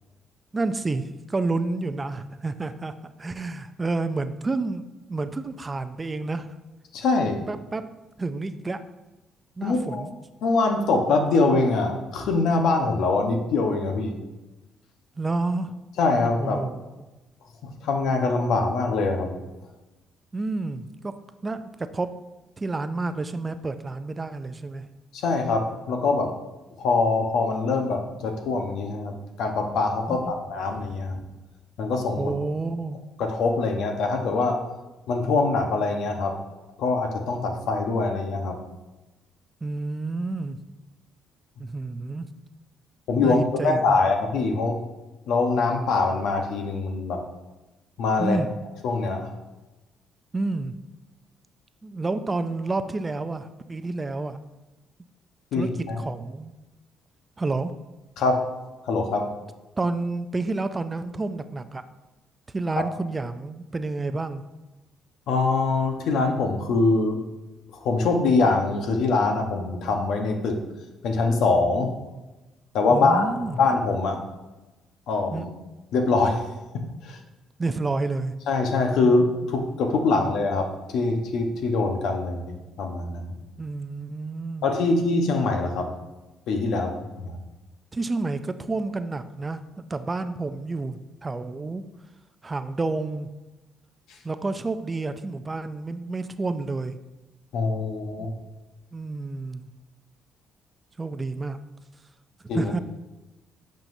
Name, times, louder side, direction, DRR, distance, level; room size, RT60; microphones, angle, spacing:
voice 1, 0.5-6.5 7.5-7.8 8.2-8.8 9.6-10.1 15.2-15.7 16.4-16.9 20.3-21.1 21.4-22.1 22.6-24.9 30.1-30.3 32.2-33.0 39.6-40.6 41.6-42.3 43.2-44.0 48.2-48.5 50.3-50.8 51.8-54.4 55.5-55.7 56.0-56.5 57.4-57.7 59.8-61.8 62.5-64.4 72.9-73.6 75.3-75.5 77.6-78.4 79.0-79.1 80.2-80.3 83.6-84.7 87.9-89.6 89.9-91.8 92.4-93.3 94.2-97.0 98.2-98.3 98.9-99.7 101.0-101.6 102.4-102.8, right 3 dB, 25° right, 11 dB, 0.4 m, -29 dB
voice 2, 6.9-7.4 9.6-10.0 10.4-14.2 16.0-16.6 17.8-19.4 25.1-26.3 26.8-31.2 31.8-32.3 33.2-34.6 35.1-36.3 36.8-38.6 43.1-44.8 45.3-47.2 48.0-48.4 48.8-49.3 55.5-56.0 58.2-58.5 58.9-59.3 62.8-62.9 65.3-67.2 67.7-70.6 71.0-71.9 72.7-74.2 75.1-75.5 75.9-76.4 77.0-77.2 78.5-83.3 84.6-85.9 86.5-87.4 97.5-98.3 102.5-102.7, left 3 dB, 80° left, 3 dB, 1.0 m, -23 dB
8.8 x 5.6 x 2.7 m, 1.1 s
cardioid pair, 90°, 0 cm